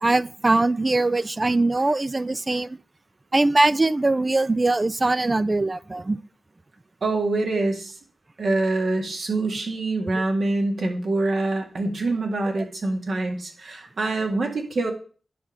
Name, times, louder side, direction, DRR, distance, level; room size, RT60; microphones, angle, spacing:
voice 1, 0.0-2.8 3.3-6.2 10.1-10.2, right 2 dB, 35° right, 0.4 m, -21 dB
voice 2, 7.0-7.9 8.4-14.9, right 2 dB, 70° right, 1.9 m, -25 dB
10.0 x 3.7 x 6.5 m
cardioid pair, 45°, 0 cm